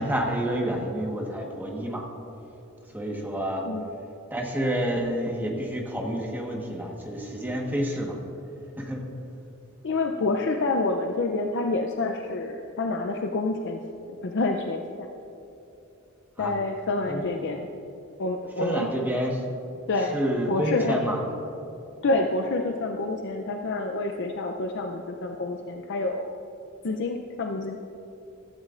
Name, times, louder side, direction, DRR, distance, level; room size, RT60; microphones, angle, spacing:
voice 1, 0.0-2.0 2.9-3.6 4.3-8.2 8.8-9.0 16.4-16.5 17.1-17.2 18.6-19.6 20.1-21.2, equal, 10° right, 0 dB, 1.3 m, -28 dB
voice 2, 9.8-13.8 14.2-15.1 16.4-17.7 18.2-18.9 19.9-20.2 20.5-21.0 22.0-26.4 26.8-27.8, left 2 dB, 60° left, 4 dB, 0.6 m, -28 dB
15.0 x 13.5 x 2.5 m, 2.9 s
head